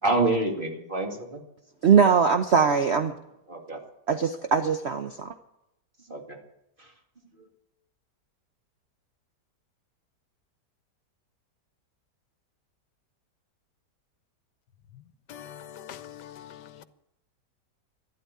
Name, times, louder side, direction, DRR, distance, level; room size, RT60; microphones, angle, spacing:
voice 1, 0.0-1.4 3.5-3.8 6.1-6.4 6.8-6.9 7.4-7.5, right 2 dB, 30° right, 2.3 m, -27 dB
voice 2, 1.8-3.1 4.1-5.3, right 6 dB, 50° right, 0.9 m, -21 dB
voice 3, 15.3-16.8, left 10 dB, 75° left, 1.4 m, -44 dB
12.5 x 12.0 x 9.6 m
omnidirectional pair, 1.9 m